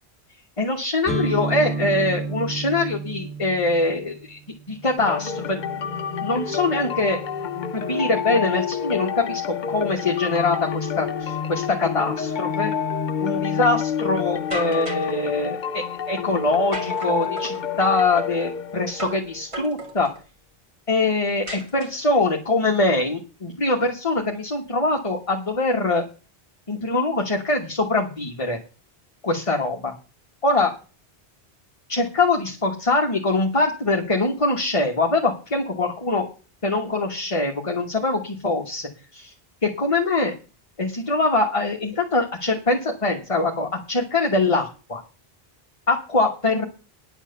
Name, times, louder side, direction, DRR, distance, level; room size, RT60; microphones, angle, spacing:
voice 1, 0.6-4.4 4.7-5.6 6.2-7.2 7.7-12.7 13.2-20.1 20.9-26.0 26.7-28.6 29.2-29.9 30.4-30.7 31.9-36.3 36.6-39.3 39.6-40.3 40.8-45.0 45.9-46.7, left 2 dB, 30° left, 1 dB, 1.3 m, -23 dB
sound 1, 1.1-8.8, right 2 dB, ahead, 2.3 m, -33 dB
sound 2, 5.0-19.4, left 7 dB, 50° left, 0.8 m, -28 dB
sound 3, 14.5-15.2 16.7-17.6 19.0-19.3 19.5-20.2 21.5-22.2, right 2 dB, 30° right, 2.4 m, -35 dB
10.0 x 7.3 x 6.8 m, 0.35 s
omnidirectional pair, 1.1 m